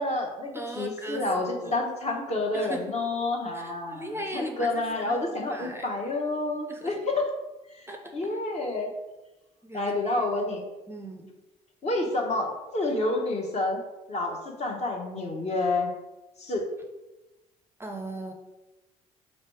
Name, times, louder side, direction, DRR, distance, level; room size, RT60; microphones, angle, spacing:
voice 1, 0.0-7.3 7.7-7.8 8.1-8.9 9.7-10.6 11.8-13.8 14.1-15.9 16.4-16.6, left 2 dB, 40° left, 1 dB, 1.0 m, -29 dB
voice 2, 0.5-1.8 2.5-2.9 3.5-5.2 5.5-5.9 6.7-6.9 7.9-8.1 9.6-10.2 10.9-11.3 17.8-18.3, right 1 dB, 15° right, 3 dB, 0.5 m, -38 dB
3.2 x 3.1 x 4.4 m, 1.0 s
hypercardioid pair, 60°, 17 cm